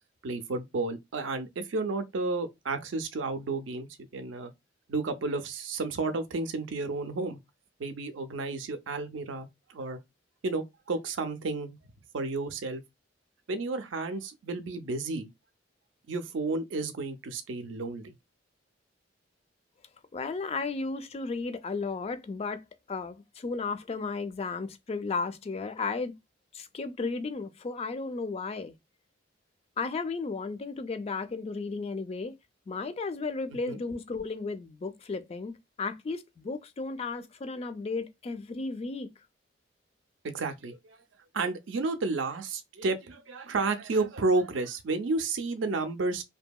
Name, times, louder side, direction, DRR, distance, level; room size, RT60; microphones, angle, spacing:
voice 1, 0.2-3.9 4.1-4.5 4.9-7.4 7.8-10.0 10.4-11.8 12.1-12.8 13.5-15.3 16.1-18.1 33.7-33.8 40.2-41.0 41.3-46.2, right 3 dB, 85° right, 0.5 m, -31 dB
voice 2, 20.1-26.1 26.5-28.7 29.8-32.3 32.7-35.5 35.8-39.1, left 4 dB, 35° left, 0.3 m, -34 dB
2.7 x 2.6 x 2.2 m
head